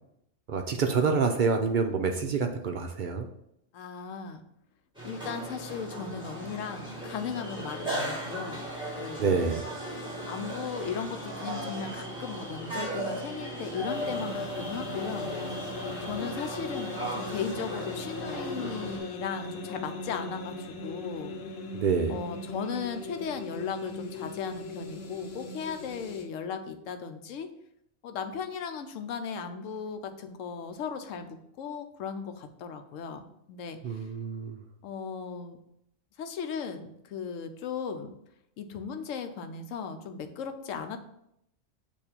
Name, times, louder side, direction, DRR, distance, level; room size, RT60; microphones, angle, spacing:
voice 1, 0.5-3.3 9.2-9.6 21.7-22.2 33.8-34.6, right 5 dB, 60° right, 4 dB, 0.5 m, -27 dB
voice 2, 3.7-4.4 5.0-8.6 9.0-9.4 10.3-15.4 16.0-21.3 22.1-27.5 28.0-34.1 34.8-35.6 36.2-38.1 38.6-41.0, left 6 dB, 80° left, 7 dB, 1.0 m, -37 dB
sound 1, 4.9-19.0, right 1 dB, 5° right, 1.8 m, -37 dB
sound 2, 13.8-26.2, left 3 dB, 55° left, 1.0 m, -38 dB
7.1 x 2.7 x 5.1 m, 0.78 s
omnidirectional pair, 1.4 m